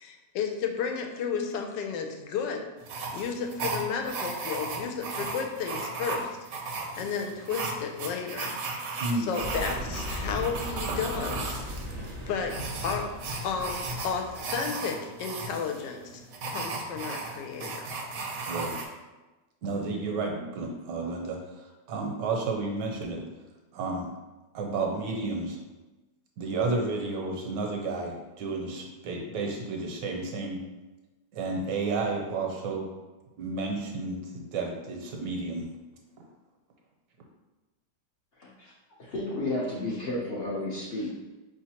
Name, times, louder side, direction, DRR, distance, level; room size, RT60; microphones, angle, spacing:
voice 1, 0.0-2.7 3.1-6.4 7.0-8.6 9.3-11.6 12.3-13.2 13.4-17.9, left 6 dB, 85° left, 3 dB, 1.3 m, -33 dB
sound 1, 2.8-18.9, right 3 dB, 65° right, 0.9 m, -36 dB
sound 2, 9.4-14.5, equal, 40° right, 0.4 m, -38 dB
voice 2, 19.6-23.2 23.7-24.1 24.5-25.6 26.4-30.6 31.3-32.9 33.4-35.7, right 3 dB, 80° right, 0 dB, 1.4 m, -31 dB
voice 3, 38.4-38.7 39.0-41.2, left 1 dB, 50° left, -6 dB, 0.7 m, -32 dB
5.0 x 3.2 x 2.8 m, 1.1 s
omnidirectional pair, 1.9 m